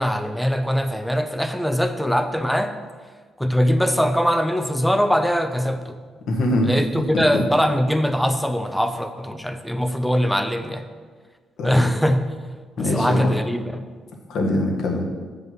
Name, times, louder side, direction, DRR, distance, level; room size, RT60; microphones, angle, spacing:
voice 1, 0.0-2.8 3.4-6.0 6.6-10.9 11.6-12.3 12.8-13.8, equal, ahead, 8 dB, 0.7 m, -22 dB
voice 2, 6.3-6.7 7.1-7.4 11.6-11.9 12.8-13.3 14.3-15.0, left 1 dB, 75° left, 1 dB, 1.5 m, -22 dB
7.6 x 5.5 x 6.0 m, 1.5 s
cardioid pair, 90°, 0 cm